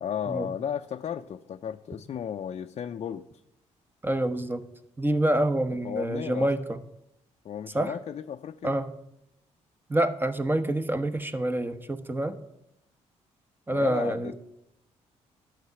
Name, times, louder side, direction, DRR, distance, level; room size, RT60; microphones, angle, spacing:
voice 1, 0.0-3.2 5.8-6.5 7.4-8.7 13.7-14.3, left 8 dB, 50° left, 6 dB, 0.5 m, -34 dB
voice 2, 4.0-4.6 5.0-6.8 7.7-8.0 8.6-8.9 9.9-12.4 13.7-14.3, right 1 dB, 15° right, 8 dB, 1.1 m, -27 dB
11.5 x 5.9 x 8.1 m, 0.83 s
cardioid pair, 75°, 13 cm